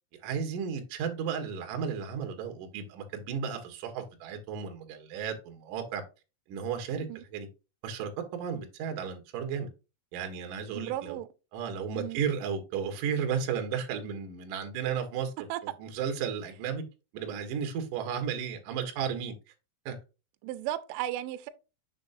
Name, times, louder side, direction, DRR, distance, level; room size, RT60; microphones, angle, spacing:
voice 1, 0.2-6.0 6.5-7.5 7.8-9.7 10.1-11.2 11.5-16.8 17.1-19.3 19.9-20.0, right 7 dB, 65° right, 2.1 m, -34 dB
voice 2, 10.7-11.3 11.9-12.2 15.5-15.6 20.4-21.5, right 14 dB, 80° right, 2.9 m, -35 dB
7.3 x 6.6 x 2.6 m
omnidirectional pair, 5.9 m